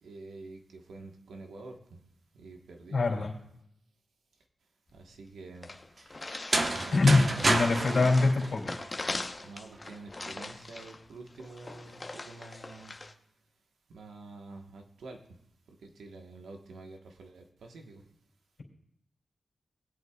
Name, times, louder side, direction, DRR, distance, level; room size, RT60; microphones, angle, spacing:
voice 1, 0.0-2.0 2.3-3.3 4.9-5.7 6.8-8.3 9.4-12.9 13.9-15.2 15.8-18.0, right 3 dB, 85° right, 3 dB, 1.3 m, -47 dB
voice 2, 2.9-3.3 6.9-8.7, left 3 dB, 70° left, 0 dB, 2.8 m, -24 dB
sound 1, 4.9-5.0 5.2-5.3 5.6-13.1, left 2 dB, 40° left, 1.0 m, -41 dB
sound 2, 6.3-9.2, right 2 dB, 50° right, 1.1 m, -29 dB
20.0 x 8.4 x 2.4 m, 0.73 s
cardioid pair, 45°, 0 cm